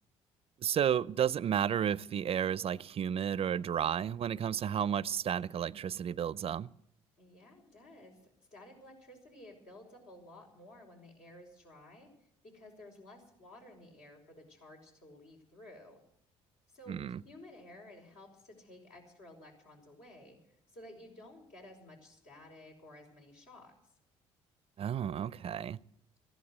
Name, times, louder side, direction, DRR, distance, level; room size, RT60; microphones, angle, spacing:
voice 1, 0.6-6.7 16.9-17.2 24.8-25.8, right 9 dB, 45° right, 0.5 m, -32 dB
voice 2, 7.2-12.1 12.4-16.0 16.7-23.7, left 1 dB, 70° left, 5.3 m, -54 dB
14.5 x 11.5 x 8.0 m
supercardioid pair, 65°, 13 cm